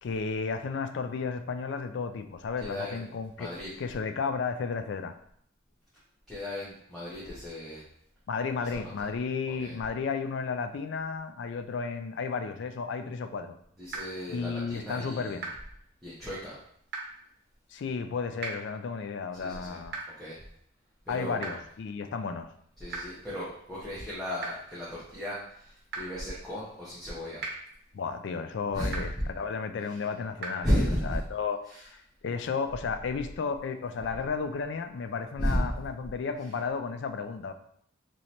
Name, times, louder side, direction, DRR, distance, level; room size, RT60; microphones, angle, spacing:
voice 1, 0.0-3.5 3.8-5.2 8.3-13.6 14.3-15.4 17.7-20.0 21.1-22.5 27.9-37.5, left 5 dB, 60° left, 9 dB, 0.3 m, -33 dB
voice 2, 2.6-2.9 3.4-3.7 6.3-7.8 8.7-8.8 9.6-9.7 13.8-15.4 16.0-16.5 19.4-19.8 20.2-20.4 21.1-21.6 22.8-27.4 28.7-28.9 30.6-31.2 35.4-35.7, equal, ahead, -10 dB, 0.9 m, -33 dB
sound 1, 13.9-14.0 15.4-15.5 16.9-17.0 18.4-18.5 19.9-20.0 21.4-21.5 22.9-23.0 24.4-24.5 25.9-26.0 27.4-27.5 28.9-29.0 30.4-30.5, right 4 dB, 55° right, 0.9 m, -34 dB
3.1 x 2.9 x 4.1 m, 0.67 s
head